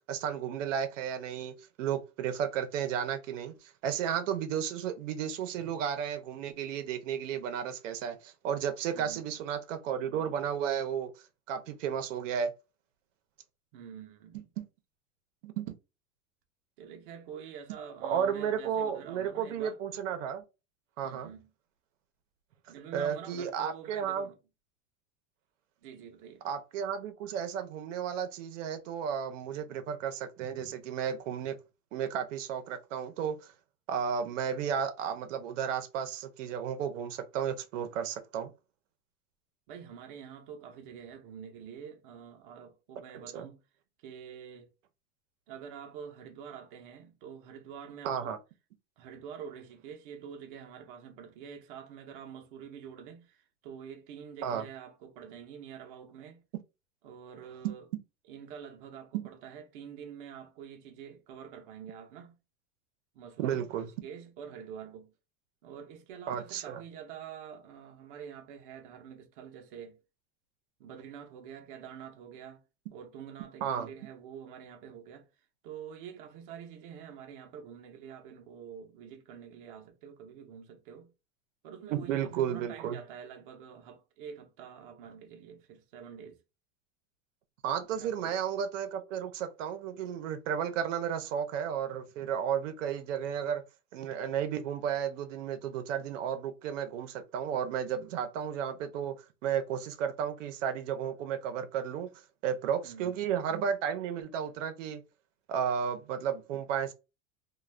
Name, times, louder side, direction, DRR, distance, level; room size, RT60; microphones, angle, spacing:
voice 1, 0.1-11.1 11.5-12.5 14.6-14.7 15.4-15.7 18.0-20.4 21.0-21.3 22.9-24.3 26.4-31.6 31.9-33.5 33.9-38.5 43.3-43.5 48.0-48.4 54.4-54.6 57.6-57.8 63.4-63.9 66.3-66.8 73.6-73.9 81.9-83.0 87.6-93.6 93.9-99.2 99.4-102.1 102.4-105.0 105.5-106.9, right 8 dB, 90° right, 0.7 m, -33 dB
voice 2, 8.9-9.4 13.7-14.4 16.8-19.8 21.0-21.5 22.7-24.4 25.8-26.4 39.7-43.6 44.0-44.7 45.5-48.3 49.0-56.4 57.0-57.9 58.3-62.4 63.1-65.1 65.6-70.0 70.8-72.6 72.9-75.3 75.6-81.1 81.6-86.4 87.9-88.4 102.8-103.2, right 8 dB, 45° right, 0.6 m, -46 dB
2.4 x 2.3 x 3.2 m
supercardioid pair, 175°, 36 cm